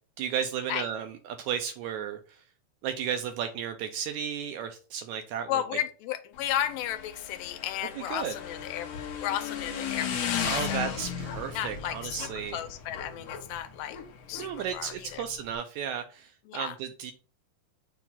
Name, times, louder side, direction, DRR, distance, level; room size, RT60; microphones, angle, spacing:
voice 1, 0.2-2.4 2.8-5.6 8.0-8.3 10.4-12.6 14.4-17.1, right 8 dB, 80° right, 7 dB, 1.7 m, -34 dB
voice 2, 5.5-8.9 9.2-10.4 10.7-11.0 11.5-14.0 14.3-15.2 16.5-16.8, left 11 dB, 85° left, 10 dB, 2.3 m, -34 dB
Motorcycle / Engine, 6.3-15.6, left 7 dB, 65° left, 1.7 m, -36 dB
7.1 x 2.4 x 5.5 m, 0.37 s
omnidirectional pair, 3.7 m